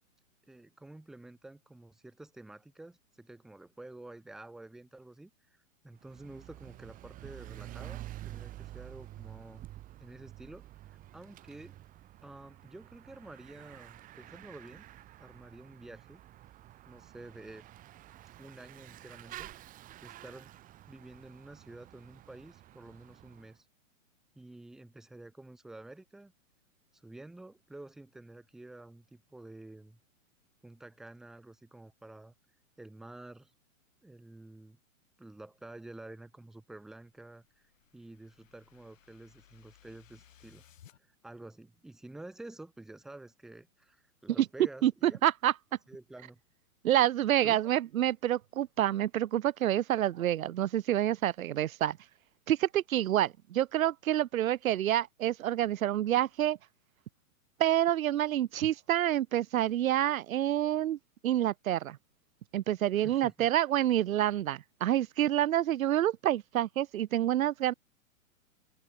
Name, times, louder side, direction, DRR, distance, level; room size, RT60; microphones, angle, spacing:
voice 1, 0.5-9.6 10.0-11.8 12.2-14.9 15.2-16.2 16.8-17.7 18.4-19.5 20.0-20.5 20.9-23.7 24.3-26.3 26.9-30.0 30.6-32.3 32.8-33.5 34.0-34.8 35.2-37.7 37.9-40.7 41.0-45.2 45.9-46.4 47.4-47.6 62.9-63.5, right 2 dB, ahead, 0.7 m, -50 dB
Bicycle / Mechanisms, 5.9-23.5, right 14 dB, 20° right, 5.5 m, -49 dB
sound 1, 37.0-41.0, left 10 dB, 70° left, 5.2 m, -61 dB
voice 2, 44.8-45.5 46.8-52.0 52.5-56.6 57.6-61.0 61.2-62.0 62.5-67.7, right 12 dB, 80° right, 0.8 m, -28 dB
hypercardioid pair, 160°, 41 cm